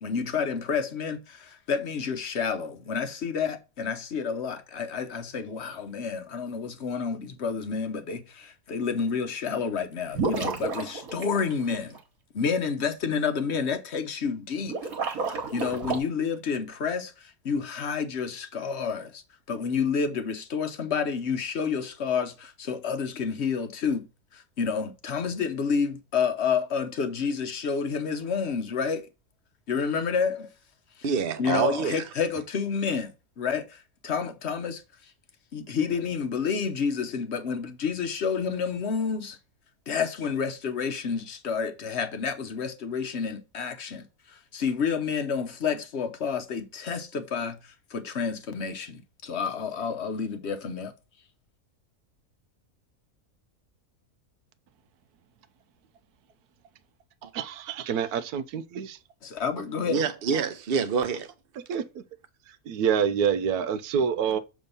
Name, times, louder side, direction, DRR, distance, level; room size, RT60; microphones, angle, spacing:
voice 1, 0.0-12.0 12.3-14.8 15.2-19.2 19.5-24.1 24.3-29.1 29.7-30.5 31.4-35.1 35.5-39.4 39.9-50.9 59.2-60.0, left 6 dB, 55° left, 1.0 m, -29 dB
sound 1, 10.1-12.0 14.6-16.0, right 4 dB, 70° right, 1.8 m, -31 dB
voice 2, 31.0-32.0 57.2-57.3 59.9-61.3, right 6 dB, 50° right, 0.8 m, -27 dB
voice 3, 57.3-59.0 61.7-62.0 62.7-64.4, right 7 dB, 90° right, 1.1 m, -27 dB
6.7 x 3.5 x 5.4 m
omnidirectional pair, 1.6 m